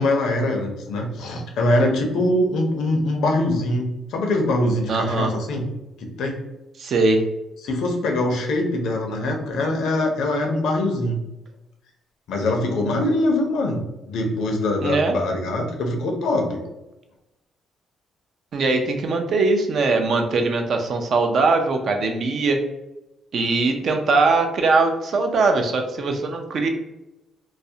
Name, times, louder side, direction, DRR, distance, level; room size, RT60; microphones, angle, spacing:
voice 1, 0.0-5.6 6.0-6.4 7.6-11.2 12.3-16.6, left 1 dB, 80° left, 2 dB, 0.5 m, -23 dB
voice 2, 4.9-5.3 6.8-7.2 14.8-15.2 18.5-22.6 23.3-26.7, right 3 dB, 60° right, 4 dB, 0.4 m, -21 dB
2.3 x 2.0 x 2.6 m, 0.95 s
cardioid pair, 90°, 0 cm